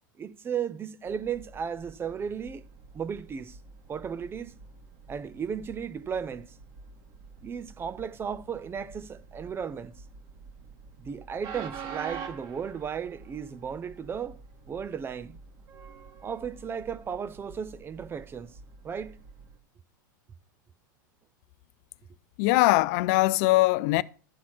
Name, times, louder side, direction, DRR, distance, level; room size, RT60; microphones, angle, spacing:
voice 1, 0.2-2.6 2.9-3.6 3.9-4.6 5.1-6.5 7.4-9.9 11.0-15.4 16.2-18.6 18.8-19.2, right 7 dB, 20° right, 0.6 m, -35 dB
Train, 1.0-19.6, right 6 dB, 45° right, 1.8 m, -47 dB
voice 2, 22.4-24.0, left 19 dB, 55° left, 0.4 m, -21 dB
12.5 x 4.3 x 5.9 m
hypercardioid pair, 100°, 11 cm